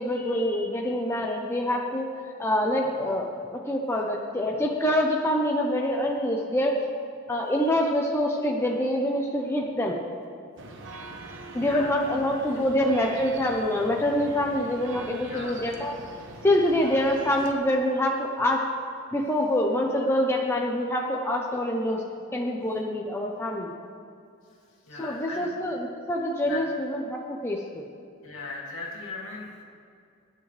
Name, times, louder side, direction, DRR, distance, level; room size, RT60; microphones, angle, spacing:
voice 1, 0.0-2.1 2.4-6.7 7.3-10.0 11.5-15.9 16.4-18.6 19.1-22.0 22.3-23.7 25.0-27.8, left 1 dB, 10° left, -1 dB, 0.8 m, -26 dB
sound 1, 10.6-17.5, right 2 dB, 55° right, 1.1 m, -43 dB
voice 2, 11.6-11.9 12.6-12.7 15.2-15.6 24.8-25.5 26.5-26.6 28.2-29.6, left 3 dB, 65° left, -3 dB, 2.9 m, -38 dB
22.5 x 9.8 x 3.4 m, 2.4 s
head